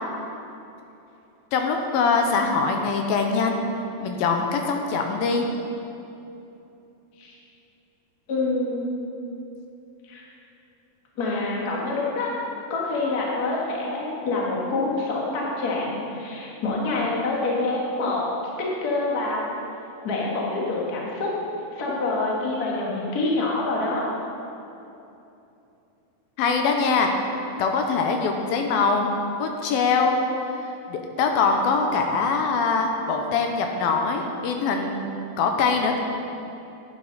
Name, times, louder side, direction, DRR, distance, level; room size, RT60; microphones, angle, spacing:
voice 1, 1.5-3.6 4.0-5.4 26.4-27.1 27.6-29.1 29.4-30.2 30.6-35.1 35.4-36.0, left 4 dB, 80° left, 3 dB, 2.5 m, -23 dB
voice 2, 8.3-8.9 10.1-10.2 11.2-12.3 12.7-18.2 18.6-19.4 20.0-21.3 21.7-24.0, left 2 dB, 55° left, -4 dB, 1.0 m, -26 dB
10.5 x 9.5 x 4.0 m, 2.8 s
omnidirectional pair, 4.4 m